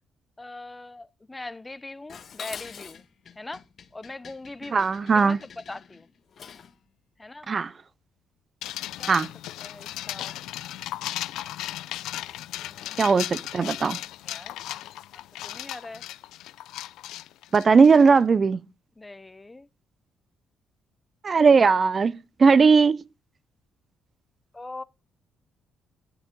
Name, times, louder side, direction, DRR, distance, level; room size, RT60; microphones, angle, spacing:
voice 1, 0.4-3.1 3.4-3.6 3.9-4.9 5.1-6.1 7.2-7.5 9.0-9.2 9.6-10.3 12.4-13.1 13.9-14.6 15.4-16.1 19.0-19.7 24.5-24.8, left 2 dB, 15° left, 0.7 m, -41 dB
Dishes pots and pans, 2.1-6.8, left 7 dB, 55° left, 1.2 m, -45 dB
voice 2, 4.7-5.4 7.5-7.7 9.1-9.3 13.0-14.0 17.5-18.6 21.2-23.0, right 5 dB, 40° right, 0.5 m, -18 dB
sound 1, 8.6-18.2, left 14 dB, 90° left, 0.4 m, -36 dB
10.5 x 10.0 x 3.7 m
cardioid pair, 90°, 0 cm